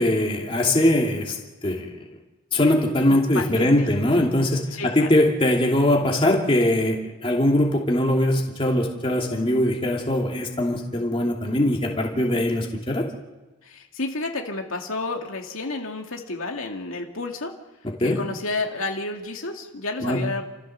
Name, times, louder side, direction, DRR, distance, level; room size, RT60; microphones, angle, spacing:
voice 1, 0.0-1.4 1.6-1.9 2.5-4.7 4.9-13.0 17.8-18.2 20.0-20.2, left 1 dB, 25° left, 0 dB, 2.8 m, -21 dB
voice 2, 3.1-3.9 4.3-4.4 4.7-5.1 13.6-17.5 18.0-20.5, left 2 dB, 80° left, 2 dB, 2.3 m, -31 dB
29.5 x 14.5 x 6.8 m, 1.1 s
head